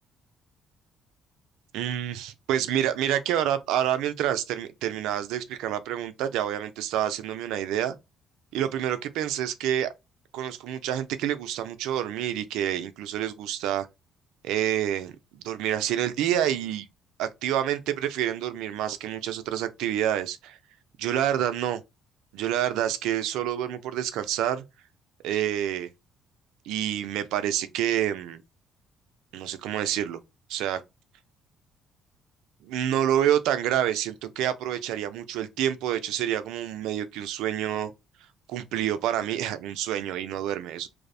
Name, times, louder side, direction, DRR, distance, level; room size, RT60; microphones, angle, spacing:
voice 1, 1.7-7.9 8.5-9.9 10.3-13.9 14.4-16.9 17.2-20.6 21.0-21.8 22.3-24.6 25.2-25.9 26.7-28.4 29.3-30.2 30.5-30.8 32.6-37.9 38.5-40.9, right 11 dB, 85° right, 0.3 m, -28 dB
2.5 x 2.0 x 2.5 m
cardioid pair, 85°, 0 cm